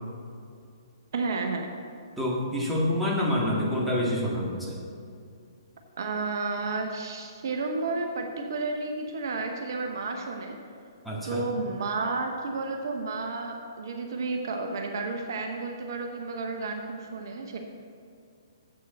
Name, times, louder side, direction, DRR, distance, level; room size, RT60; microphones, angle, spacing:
voice 1, 1.1-1.7 6.0-10.6 11.2-17.6, right 3 dB, 55° right, 3 dB, 0.9 m, -31 dB
voice 2, 2.2-4.8 11.0-11.4, left 1 dB, ahead, -6 dB, 1.7 m, -27 dB
7.7 x 6.8 x 6.7 m, 2.4 s
figure-of-eight pair, 125°, 2 cm